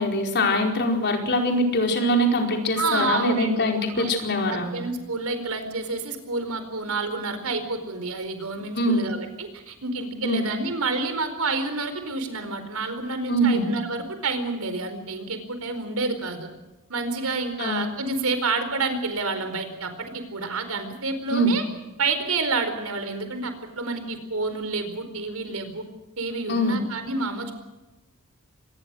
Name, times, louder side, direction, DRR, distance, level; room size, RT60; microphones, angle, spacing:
voice 1, 0.0-4.7 8.7-9.1 10.2-10.5 13.3-13.7 17.6-17.8 21.3-21.5 26.5-26.8, equal, 50° left, 2 dB, 4.7 m, -23 dB
voice 2, 2.8-3.5 3.9-4.1 4.5-16.5 16.9-21.6 22.0-25.8 26.2-27.5, right 3 dB, 80° right, 9 dB, 4.5 m, -29 dB
25.0 x 20.5 x 6.4 m, 1.1 s
head